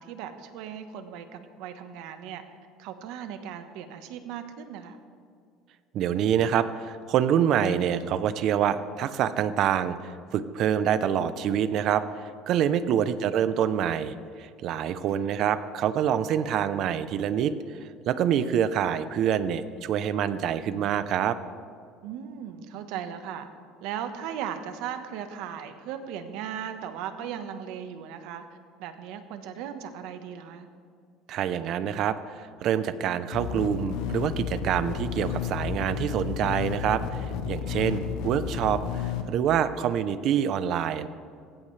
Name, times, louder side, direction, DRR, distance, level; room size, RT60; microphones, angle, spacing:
voice 1, 0.0-2.4 2.8-5.0 15.2-15.3 22.0-23.5 23.8-30.7 37.7-37.8, right 9 dB, 70° right, 8 dB, 1.2 m, -37 dB
voice 2, 5.9-21.4 31.3-41.1, right 9 dB, 50° right, 13 dB, 0.7 m, -26 dB
sound 1, 33.3-39.2, left 8 dB, 75° left, 1.3 m, -32 dB
17.5 x 16.0 x 3.3 m, 2.3 s
cardioid pair, 155°, 0 cm